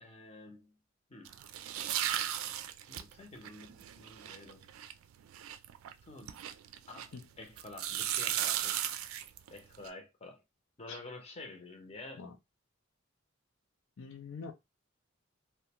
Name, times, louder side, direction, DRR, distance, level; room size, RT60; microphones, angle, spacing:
voice 1, 0.0-0.7 1.1-1.4 2.9-4.7 6.0-6.4 6.9-8.8 9.5-10.4 10.8-12.2, left 2 dB, 30° left, 0.7 m, -49 dB
sound 1, 1.2-7.2 7.6-9.9, right 11 dB, 90° right, 0.3 m, -36 dB
voice 2, 14.0-14.5, left 5 dB, 70° left, 0.5 m, -44 dB
2.4 x 2.2 x 2.9 m
head